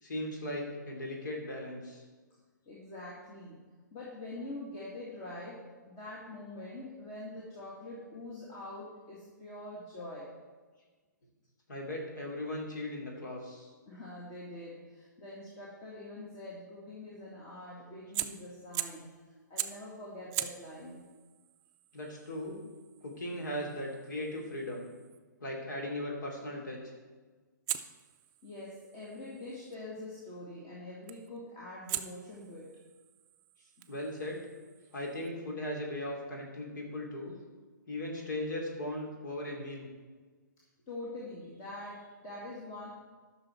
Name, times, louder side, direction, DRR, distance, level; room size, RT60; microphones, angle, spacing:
voice 1, 0.0-2.0 11.7-13.7 21.9-22.6 23.0-24.9 25.4-26.8 33.9-34.4 34.9-37.3 37.9-39.9, left 1 dB, 65° left, 0 dB, 2.8 m, -38 dB
voice 2, 2.7-3.6 3.9-5.6 5.9-10.3 13.9-19.1 19.5-21.0 28.4-32.7 40.9-42.9, left 1 dB, 30° left, -5 dB, 2.0 m, -44 dB
Fire, 18.1-19.1 19.6-19.9 20.3-25.2 27.7-29.8 31.1-31.4 31.9-35.3, right 12 dB, 25° right, 0.5 m, -42 dB
12.5 x 6.2 x 4.5 m, 1.4 s
figure-of-eight pair, 130°, 11 cm